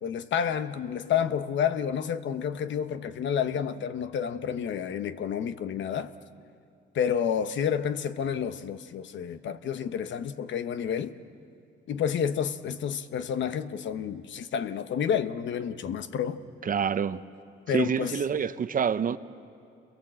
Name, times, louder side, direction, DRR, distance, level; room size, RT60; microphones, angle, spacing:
voice 1, 0.0-6.1 6.9-11.1 11.9-16.4 17.7-18.2, left 8 dB, 70° left, 1.1 m, -30 dB
voice 2, 16.6-17.2 17.7-19.2, right 7 dB, 45° right, 0.8 m, -27 dB
29.5 x 22.5 x 7.7 m
cardioid pair, 90°, 20 cm